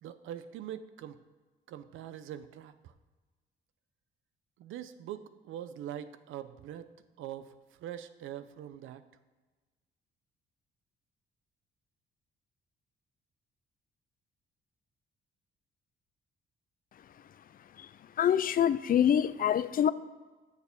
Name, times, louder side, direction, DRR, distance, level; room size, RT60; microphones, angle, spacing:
voice 1, 0.0-1.2 1.7-2.9 4.6-6.9 7.2-9.0, right 10 dB, 85° right, 12 dB, 0.6 m, -43 dB
voice 2, 18.2-19.9, left 9 dB, 45° left, 16 dB, 0.4 m, -25 dB
7.1 x 6.5 x 5.2 m, 1.3 s
cardioid pair, 90°, 20 cm